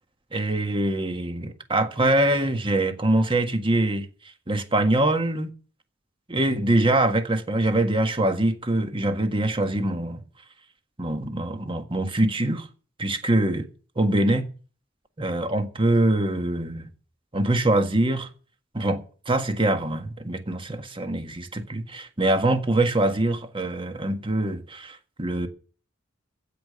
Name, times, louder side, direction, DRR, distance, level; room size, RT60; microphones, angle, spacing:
voice 1, 0.3-4.1 4.5-5.5 6.3-10.2 11.0-12.7 13.0-13.7 14.0-14.5 15.2-16.9 17.3-18.3 18.7-25.5, right 1 dB, 30° right, 1.6 m, -24 dB
15.5 x 5.3 x 9.5 m
head